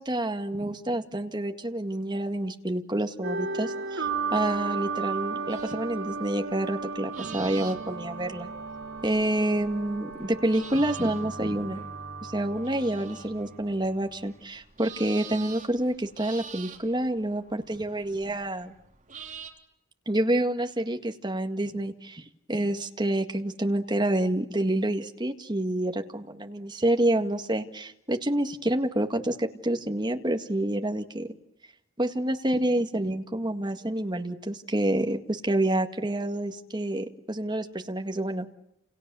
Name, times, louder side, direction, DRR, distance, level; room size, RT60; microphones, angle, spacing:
voice 1, 0.0-8.5 9.0-11.9 12.2-18.7 20.1-31.3 32.0-38.5, right 1 dB, 20° right, 5 dB, 1.8 m, -28 dB
sound 1, 3.2-14.2, right 4 dB, 65° right, 4.0 m, -35 dB
sound 2, 5.5-19.5, right 7 dB, 40° right, 3.6 m, -48 dB
30.0 x 29.0 x 7.0 m, 0.85 s
head